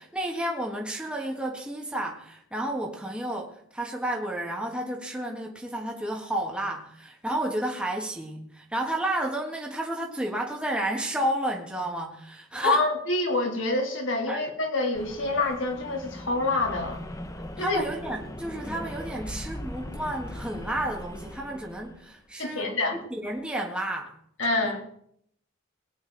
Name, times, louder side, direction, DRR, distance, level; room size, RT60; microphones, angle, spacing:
voice 1, 0.0-12.9 14.3-14.4 17.6-24.1, right 1 dB, 5° right, 0 dB, 1.6 m, -31 dB
voice 2, 12.6-17.0 17.6-17.8 22.4-23.0 24.4-24.8, left 2 dB, 75° left, 1 dB, 3.2 m, -26 dB
sound 1, 14.9-22.2, left 1 dB, 15° left, 0.9 m, -39 dB
19.5 x 9.8 x 3.9 m, 0.68 s
head